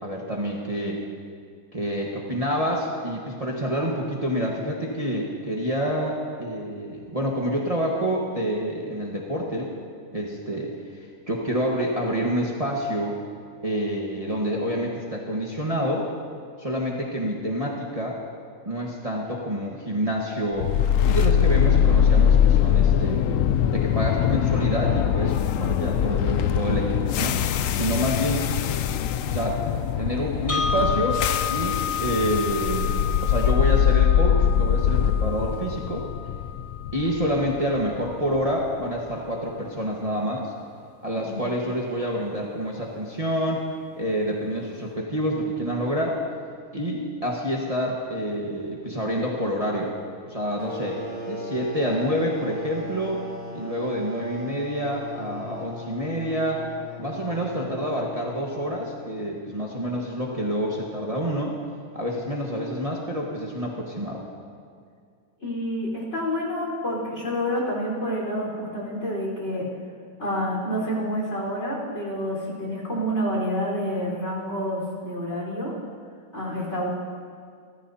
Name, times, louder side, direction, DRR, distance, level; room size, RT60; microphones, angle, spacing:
voice 1, 0.0-1.0 1.7-9.7 10.1-10.7 11.3-13.2 13.6-16.1 16.6-18.2 18.6-20.7 21.0-23.3 23.7-27.4 27.7-28.4 29.2-29.6 30.0-31.2 31.5-33.0 33.2-36.0 36.9-40.5 41.0-43.6 44.0-46.2 46.7-49.9 50.3-51.0 51.3-53.2 53.5-56.6 57.0-61.6 61.9-64.2, equal, 25° right, -3 dB, 1.4 m, -27 dB
sound 1, 20.6-38.7, left 9 dB, 70° left, 0.9 m, -22 dB
sound 2, 30.5-38.5, left 7 dB, 25° left, 1.1 m, -32 dB
sound 3, 50.6-59.0, left 2 dB, 85° left, 2.6 m, -38 dB
voice 2, 65.4-69.7 70.2-75.7 76.3-76.9, equal, 50° left, -4 dB, 4.7 m, -28 dB
29.5 x 13.5 x 2.8 m, 2.2 s
omnidirectional pair, 1.6 m